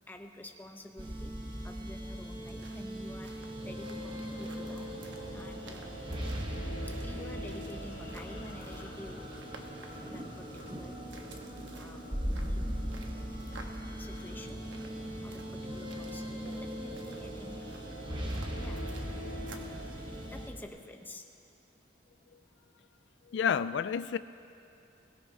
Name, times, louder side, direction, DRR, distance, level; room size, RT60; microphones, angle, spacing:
voice 1, 0.1-1.3 1.6-4.9 5.3-5.9 6.9-9.3 10.1-11.0 11.7-12.1 12.5-12.8 14.0-14.6 15.2-17.7 18.6-18.9 20.3-21.3, left 1 dB, 10° left, 4 dB, 0.8 m, -49 dB
sound 1, 1.0-20.5, equal, 25° right, 1.2 m, -39 dB
sound 2, 2.4-19.8, right 3 dB, 75° right, 1.2 m, -55 dB
sound 3, 3.4-20.7, left 1 dB, 90° left, 3.5 m, -49 dB
voice 2, 23.3-24.2, left 7 dB, 70° left, 14 dB, 0.3 m, -30 dB
22.0 x 18.0 x 2.8 m, 2.6 s
head